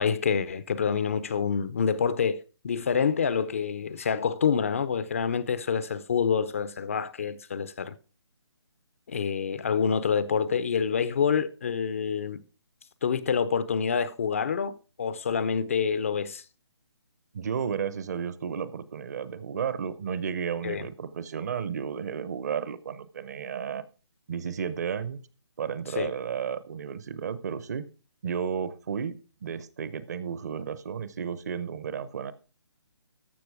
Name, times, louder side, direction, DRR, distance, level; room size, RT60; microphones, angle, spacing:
voice 1, 0.0-7.9 9.1-12.4 13.0-16.4 20.6-20.8 26.0-26.1, left 6 dB, 30° left, 0.5 m, -27 dB
voice 2, 17.3-23.8 24.3-25.2 25.6-27.9 28.2-32.3, right 7 dB, 40° right, 0.8 m, -33 dB
14.0 x 6.3 x 4.8 m
hypercardioid pair, 165°, 14 cm